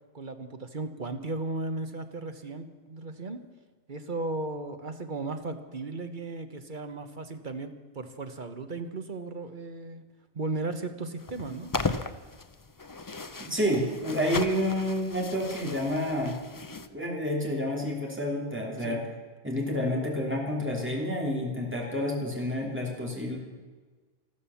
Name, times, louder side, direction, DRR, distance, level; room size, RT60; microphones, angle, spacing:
voice 1, 0.1-3.4 3.9-10.0 10.3-11.7 18.8-19.0, right 2 dB, 50° right, 8 dB, 1.3 m, -36 dB
sound 1, 11.2-16.9, left 3 dB, 25° left, 0.6 m, -37 dB
voice 2, 13.4-16.3 16.9-19.0 19.4-23.4, equal, 10° right, -1 dB, 2.9 m, -29 dB
14.0 x 13.5 x 7.0 m, 1.4 s
omnidirectional pair, 1.0 m